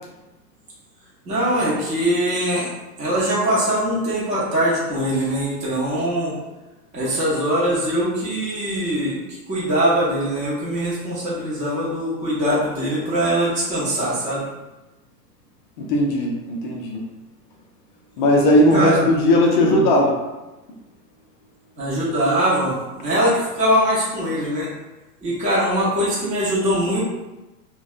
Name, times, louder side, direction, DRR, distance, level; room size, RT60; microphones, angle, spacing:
voice 1, 1.3-2.7 3.0-6.3 6.9-9.2 9.5-14.4 18.7-19.0 19.8-20.0 21.8-24.7 25.2-27.0, equal, 15° right, -8 dB, 0.7 m, -22 dB
voice 2, 15.8-17.0 18.2-20.2, left 1 dB, 35° left, 0 dB, 0.4 m, -17 dB
2.5 x 2.2 x 2.4 m, 1.1 s
hypercardioid pair, 120°, 48 cm